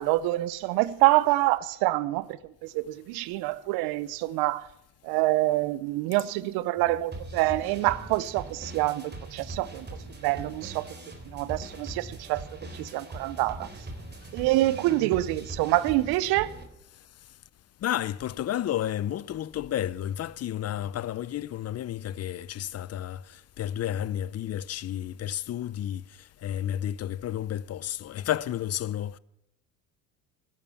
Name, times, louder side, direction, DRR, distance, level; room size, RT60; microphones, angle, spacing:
voice 1, 0.0-4.7 5.0-9.9 10.2-10.8 11.3-12.4 12.7-13.7 14.3-16.5, right 17 dB, 75° right, 0.8 m, -26 dB
sound 1, 6.8-16.6, right 2 dB, 25° right, 3.5 m, -41 dB
voice 2, 17.8-29.2, left 11 dB, 40° left, 0.6 m, -31 dB
13.5 x 11.0 x 7.0 m
supercardioid pair, 75°, 38 cm